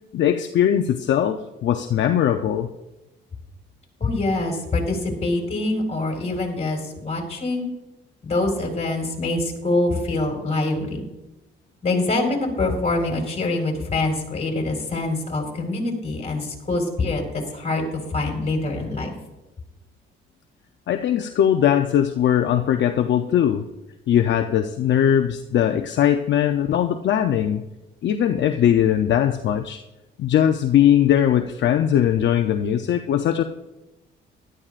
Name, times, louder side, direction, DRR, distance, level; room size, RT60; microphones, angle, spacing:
voice 1, 0.1-2.7 20.9-23.7 24.1-27.6 28.0-29.8 30.2-33.4, left 10 dB, 65° left, 6 dB, 0.7 m, -20 dB
voice 2, 4.0-7.7 8.2-11.1 11.8-19.1, left 2 dB, 35° left, 1 dB, 4.4 m, -25 dB
16.0 x 12.5 x 2.5 m, 1.0 s
cardioid pair, 90°, 20 cm